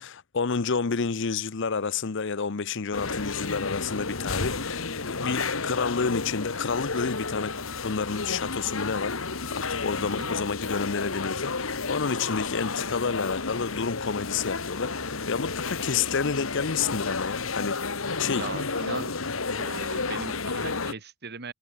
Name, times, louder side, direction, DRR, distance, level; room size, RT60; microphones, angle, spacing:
voice 1, 0.0-7.5 7.8-9.2 9.5-18.5, left 5 dB, 65° left, 0.8 m, -30 dB
sound 1, 2.9-20.9, left 4 dB, 80° left, 2.2 m, -31 dB
voice 2, 10.0-10.3 18.3-19.1 19.5-21.5, right 3 dB, 55° right, 2.8 m, -39 dB
head